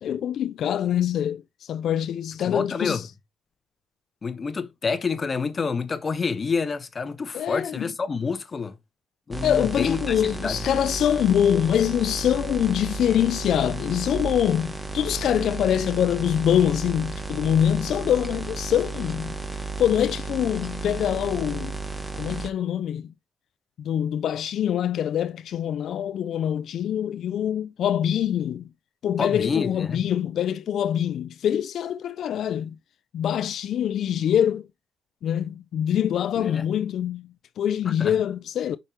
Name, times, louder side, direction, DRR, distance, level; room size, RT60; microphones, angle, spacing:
voice 1, 0.0-3.0 7.3-7.8 9.4-19.4 19.8-21.7 22.2-23.1 23.8-28.7 29.0-32.8 33.1-34.7 35.2-38.8, left 10 dB, 70° left, 0.4 m, -24 dB
voice 2, 2.4-3.0 4.2-8.7 9.3-10.6 29.2-30.0 36.4-36.6 38.0-38.2, left 5 dB, 35° left, 1.0 m, -28 dB
sound 1, 9.3-22.5, right 3 dB, 10° right, 1.3 m, -33 dB
5.4 x 5.3 x 4.5 m
cardioid pair, 90°, 0 cm